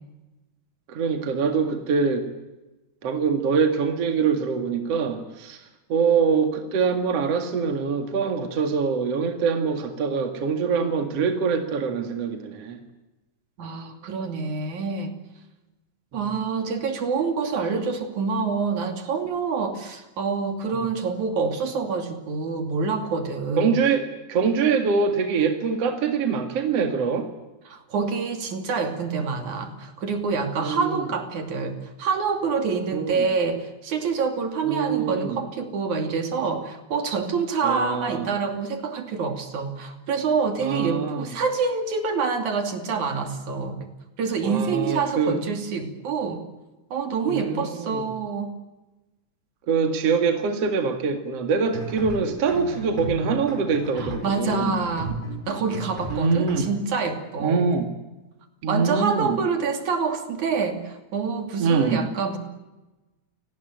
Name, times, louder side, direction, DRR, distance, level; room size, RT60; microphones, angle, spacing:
voice 1, 0.9-2.3 3.0-5.6 5.9-12.8 16.4-16.5 20.7-20.9 23.6-27.3 30.6-31.0 32.9-33.3 34.6-35.4 37.6-38.3 40.6-41.3 44.4-45.4 47.3-48.0 49.7-54.8 56.1-56.7 57.4-57.9 58.6-59.4 61.6-62.1, right 5 dB, 55° right, 6 dB, 3.0 m, -24 dB
voice 2, 13.6-15.1 16.1-23.8 27.7-43.8 44.2-46.4 46.9-48.5 54.0-55.2 55.5-57.7 58.7-62.4, right 5 dB, 75° right, 6 dB, 4.2 m, -27 dB
sound 1, 51.6-56.7, right 1 dB, 15° right, 5.2 m, -34 dB
28.5 x 19.0 x 9.3 m, 1.1 s
omnidirectional pair, 3.4 m